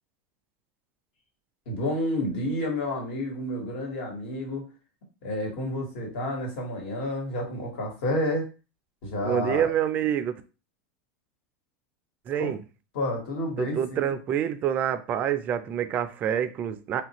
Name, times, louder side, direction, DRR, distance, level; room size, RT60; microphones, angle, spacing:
voice 1, 1.7-4.6 5.2-8.5 9.0-9.7 12.4-12.5 12.9-14.0, left 1 dB, 65° left, 0 dB, 1.4 m, -30 dB
voice 2, 9.2-10.4 12.3-12.6 13.6-17.0, right 9 dB, 30° right, 9 dB, 0.3 m, -27 dB
3.3 x 2.4 x 2.9 m, 0.33 s
supercardioid pair, 150°, 6 cm